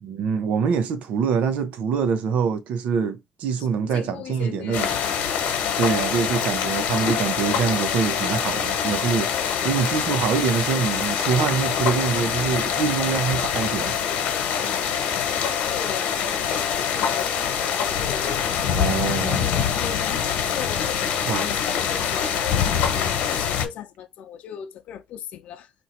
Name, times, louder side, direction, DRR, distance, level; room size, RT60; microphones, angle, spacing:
voice 1, 0.0-4.9 5.8-14.0 18.7-19.5 21.2-21.5, right 6 dB, 65° right, 0.6 m, -25 dB
voice 2, 3.9-5.8 14.2-14.9 15.5-16.6 16.9-18.5 18.9-25.7, left 9 dB, 60° left, 0.6 m, -38 dB
sound 1, 4.7-23.7, left 8 dB, 80° left, 1.1 m, -25 dB
sound 2, 4.9-23.4, right 1 dB, 25° right, 1.2 m, -41 dB
2.9 x 2.6 x 4.3 m
cardioid pair, 155°, 3 cm